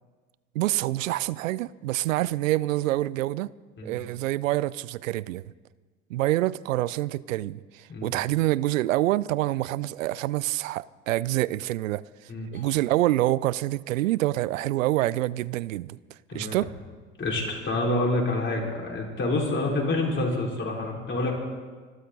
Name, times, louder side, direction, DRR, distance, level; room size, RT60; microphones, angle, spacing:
voice 1, 0.5-3.5 3.8-5.4 6.1-12.0 12.5-16.0 16.3-16.7, right 16 dB, 70° right, 0.6 m, -26 dB
voice 2, 12.3-12.7 16.3-16.6 17.2-21.3, left 2 dB, 30° left, 5.1 m, -27 dB
25.5 x 12.5 x 4.0 m
figure-of-eight pair, 70°, 41 cm